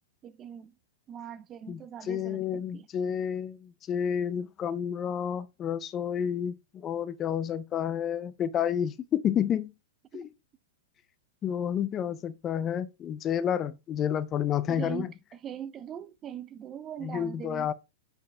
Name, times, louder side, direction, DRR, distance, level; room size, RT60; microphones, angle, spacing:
voice 1, 0.2-0.7 1.1-2.9 10.1-10.3 14.7-15.1 15.3-17.7, right 9 dB, 25° right, 0.5 m, -41 dB
voice 2, 2.1-9.7 10.1-10.3 11.4-15.1 17.0-17.7, left 9 dB, 30° left, 0.5 m, -30 dB
8.6 x 4.6 x 3.3 m
hypercardioid pair, 120°, 0 cm